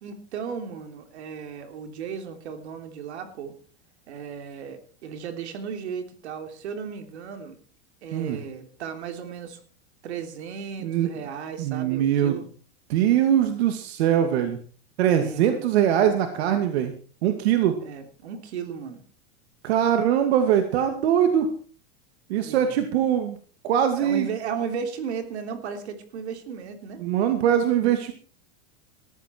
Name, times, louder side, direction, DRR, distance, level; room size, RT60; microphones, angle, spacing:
voice 1, 0.0-3.5 4.1-7.6 8.0-9.6 10.0-12.4 15.2-15.6 17.8-19.0 22.4-22.8 24.0-27.0, right 6 dB, 90° right, 8 dB, 3.4 m, -35 dB
voice 2, 11.6-12.4 12.9-14.6 15.0-16.9 17.2-17.8 19.6-21.5 22.3-23.4 23.6-24.3 27.0-28.1, right 10 dB, 70° right, 7 dB, 2.4 m, -22 dB
18.0 x 14.5 x 4.5 m, 0.40 s
supercardioid pair, 145°, 33 cm